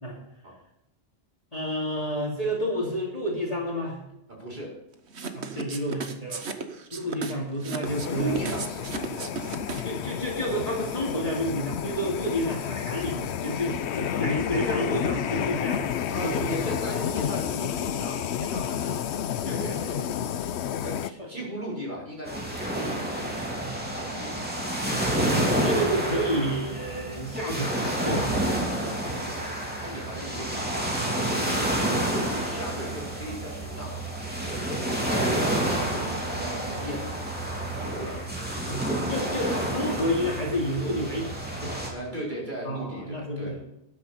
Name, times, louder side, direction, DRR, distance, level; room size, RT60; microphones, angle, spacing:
voice 1, 1.5-4.0 5.3-6.4 6.9-8.4 9.8-15.9 16.2-16.5 21.2-21.3 25.6-28.3 38.7-41.4 41.6-41.8 42.6-43.6, equal, 35° left, -2 dB, 2.9 m, -30 dB
voice 2, 4.3-4.7 8.0-9.3 14.1-14.2 16.1-19.0 19.4-20.3 20.8-23.2 23.9-24.4 29.8-30.9 31.3-31.5 31.8-34.0 34.8-39.2 41.9-43.6, right 1 dB, 45° right, -4 dB, 4.8 m, -37 dB
sound 1, 5.1-10.0, right 5 dB, 80° right, 1.4 m, -35 dB
sound 2, 7.8-21.1, left 9 dB, 80° left, 0.9 m, -30 dB
sound 3, 22.3-41.9, right 1 dB, 10° right, 3.0 m, -29 dB
13.0 x 10.5 x 4.3 m, 0.86 s
omnidirectional pair, 1.1 m